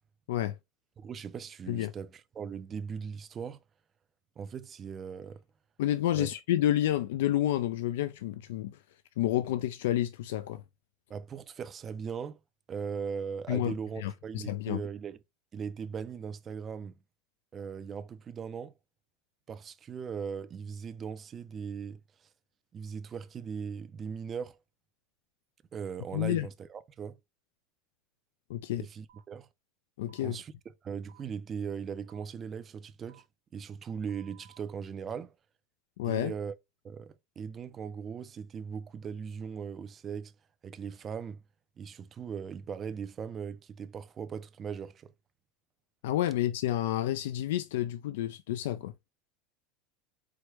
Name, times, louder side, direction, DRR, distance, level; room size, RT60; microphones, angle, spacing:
voice 1, 1.0-3.6 4.4-5.4 6.1-6.3 11.1-12.4 12.7-15.2 15.5-16.9 17.5-18.7 19.5-22.0 22.7-24.6 25.7-27.2 28.8-29.5 30.2-30.5 30.8-33.2 33.5-35.3 36.0-36.5 36.8-40.3 40.6-41.4 41.8-45.1, right 6 dB, 20° right, 0.3 m, -39 dB
voice 2, 5.8-8.8 9.2-10.6 13.5-14.8 26.1-26.5 28.5-28.9 30.0-30.4 36.0-36.3 46.0-48.9, left 13 dB, 90° left, 0.3 m, -30 dB
sound 1, 29.1-29.2 30.1-30.2 31.1-31.2 32.1-32.2 33.1-33.2 34.1-34.6, right 12 dB, 90° right, 1.0 m, -59 dB
4.6 x 2.1 x 4.5 m
supercardioid pair, 175°, 0 cm